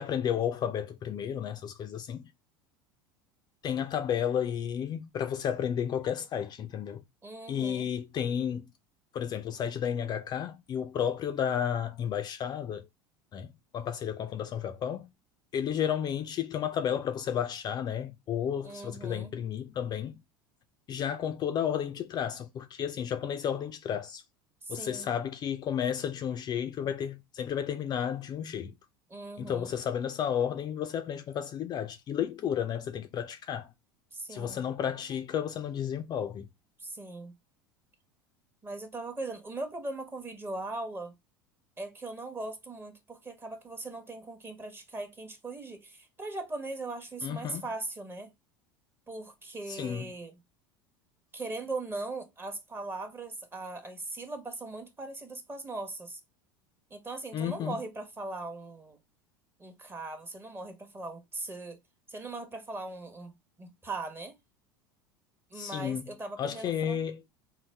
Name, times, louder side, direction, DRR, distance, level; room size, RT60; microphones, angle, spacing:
voice 1, 0.0-2.3 3.6-7.0 7.5-8.7 9.1-12.9 13.3-15.0 15.5-20.2 20.9-24.2 24.7-28.7 29.4-33.7 34.3-36.5 47.2-47.7 49.7-50.1 57.3-57.8 65.5-66.1 66.4-67.2, left 9 dB, 35° left, 0.4 m, -32 dB
voice 2, 7.2-7.9 18.6-19.3 24.6-25.1 29.1-29.7 34.1-34.6 36.8-37.3 38.6-41.1 41.8-48.3 49.1-50.3 51.3-56.2 56.9-59.0 59.6-61.8 62.1-64.4 65.5-67.0, right 2 dB, 20° right, 0.9 m, -39 dB
3.9 x 2.0 x 3.2 m
hypercardioid pair, 80°, 12 cm